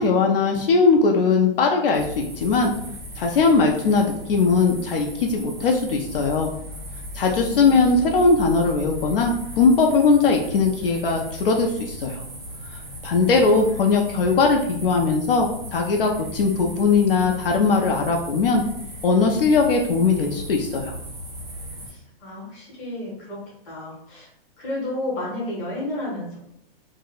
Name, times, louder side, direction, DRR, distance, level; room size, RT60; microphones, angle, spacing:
voice 1, 0.0-2.7 3.2-6.5 7.1-12.2 13.0-18.6 19.0-21.0, left 4 dB, 65° left, 2 dB, 0.5 m, -20 dB
sound 1, 1.9-21.9, equal, 25° right, 0.5 m, -37 dB
voice 2, 7.2-7.7 13.5-14.0 21.9-24.3 24.6-26.4, left 1 dB, 15° left, -6 dB, 0.8 m, -32 dB
2.7 x 2.1 x 3.8 m, 0.75 s
hypercardioid pair, 180°, 30 cm